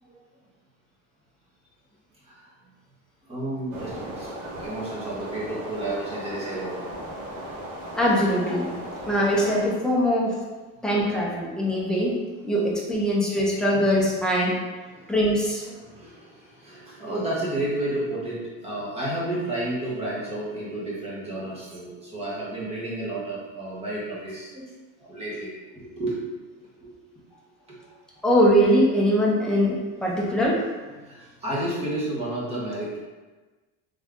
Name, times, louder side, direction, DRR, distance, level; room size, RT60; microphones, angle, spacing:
voice 1, 3.3-7.0 9.0-9.1 9.4-9.7 14.9-15.1 15.7-24.7 25.0-26.2 26.6-26.9 27.7-28.0 30.8-33.0, right 1 dB, 20° right, -7 dB, 1.0 m, -32 dB
sound 1, 3.7-9.7, equal, 80° right, 1.1 m, -37 dB
voice 2, 8.0-8.8 9.1-10.4 10.8-12.1 12.4-14.6 15.1-15.6 28.2-30.6, equal, ahead, -5 dB, 0.4 m, -22 dB
3.5 x 2.6 x 3.4 m, 1.3 s
cardioid pair, 175°, 30 cm